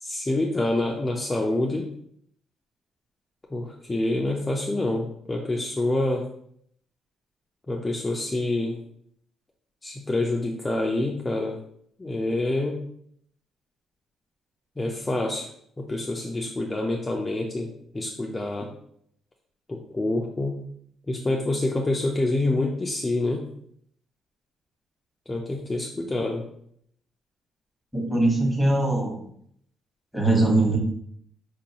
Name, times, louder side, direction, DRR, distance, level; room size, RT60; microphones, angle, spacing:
voice 1, 0.0-1.9 3.5-6.3 7.7-8.8 9.8-11.6 12.0-12.8 14.8-15.5 15.8-18.7 19.7-20.6 21.1-23.5 25.3-26.5, left 2 dB, 20° left, -1 dB, 0.5 m, -27 dB
voice 2, 27.9-29.2 30.1-30.8, right 2 dB, 5° right, -1 dB, 1.3 m, -21 dB
4.6 x 2.6 x 2.9 m, 0.67 s
cardioid pair, 90°, 0 cm